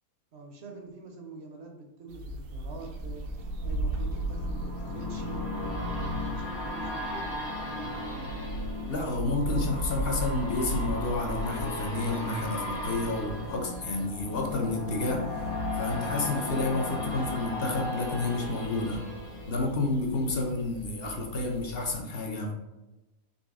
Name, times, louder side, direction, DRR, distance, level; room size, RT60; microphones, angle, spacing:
voice 1, 0.3-7.9 20.4-20.6, right 2 dB, 60° right, 2 dB, 0.8 m, -45 dB
sound 1, 2.1-22.0, right 1 dB, 80° right, 1.0 m, -38 dB
sound 2, 2.5-20.3 20.7-20.8, left 2 dB, 90° left, 1.5 m, -36 dB
voice 2, 8.9-15.2 15.7-19.0 19.5-22.5, left 2 dB, 55° left, 2 dB, 0.7 m, -30 dB
4.0 x 3.3 x 3.5 m, 1.0 s
omnidirectional pair, 1.5 m